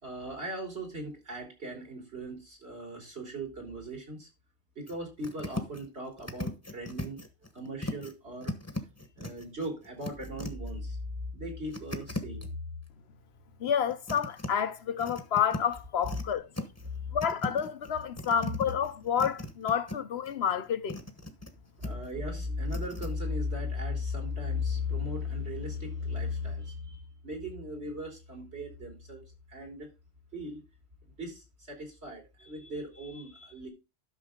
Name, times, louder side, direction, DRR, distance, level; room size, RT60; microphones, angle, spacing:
voice 1, 0.0-4.3 4.8-7.2 7.5-8.5 9.2-12.5 17.0-17.1 21.8-29.9 30.3-30.6 31.2-33.7, left 2 dB, 70° right, 3.7 m, -37 dB
sound 1, 4.9-5.0 5.2-5.9 6.2-8.1 8.4-10.7 11.7-12.5 13.7-14.5 15.0-16.2 16.5-17.0 17.2-20.0 20.2-21.5 21.8-22.1 22.7-23.1, left 1 dB, 15° left, 1.0 m, -38 dB
voice 2, 13.6-16.5 17.1-21.0, left 8 dB, 70° left, 1.1 m, -29 dB
12.0 x 6.2 x 3.7 m
omnidirectional pair, 1.1 m